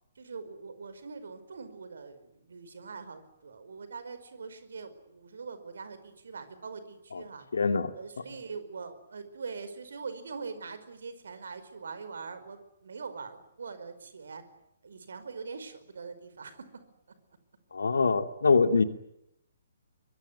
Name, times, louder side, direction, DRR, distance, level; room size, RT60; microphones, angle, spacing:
voice 1, 0.1-7.5 7.9-14.4 14.8-16.8, right 5 dB, 60° right, 11 dB, 5.0 m, -43 dB
voice 2, 7.5-7.9 17.7-18.8, left 4 dB, 65° left, 9 dB, 2.6 m, -24 dB
24.0 x 23.0 x 9.6 m, 0.81 s
figure-of-eight pair, 130°, 0 cm